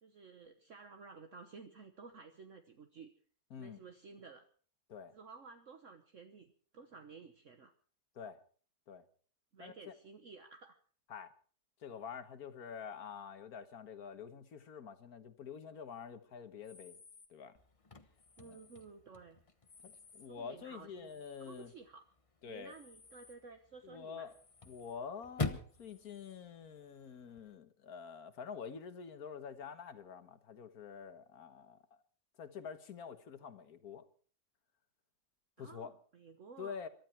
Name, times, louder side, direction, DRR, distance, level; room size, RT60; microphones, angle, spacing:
voice 1, 0.0-3.1 3.6-4.5 5.1-7.7 9.5-10.8 18.4-19.4 20.3-21.1 21.4-22.1 22.4-24.3 35.6-36.8, right 4 dB, 50° right, 1.4 m, -54 dB
voice 2, 9.6-9.9 11.1-11.3 11.8-17.0 17.3-17.5 18.4-18.6 19.8-21.7 22.4-22.7 23.8-24.3 24.7-32.0 32.4-34.0 35.6-35.9 36.6-36.9, left 6 dB, 65° left, 1.8 m, -47 dB
sound 1, 16.6-17.3 18.2-18.9 19.7-20.3 21.0-21.8 22.6-23.4 24.3-25.0 25.7-26.4, left 4 dB, 45° left, 1.9 m, -62 dB
Chirp tweet / Car / Slam, 17.6-27.5, left 3 dB, 25° left, 1.0 m, -47 dB
23.5 x 12.5 x 4.5 m
omnidirectional pair, 1.8 m